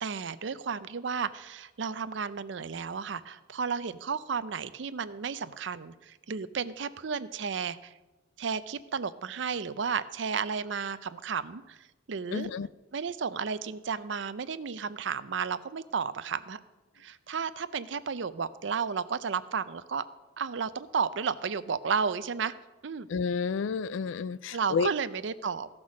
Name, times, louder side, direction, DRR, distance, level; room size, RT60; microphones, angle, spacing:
voice 1, 0.0-7.9 8.4-11.8 12.1-12.5 12.9-16.6 17.0-20.1 20.4-22.5 22.8-23.1 24.5-25.7, right 6 dB, 65° right, 14 dB, 0.5 m, -33 dB
voice 2, 12.3-12.7 23.1-24.9, left 5 dB, 80° left, 19 dB, 0.4 m, -30 dB
15.0 x 6.1 x 6.2 m, 1.1 s
head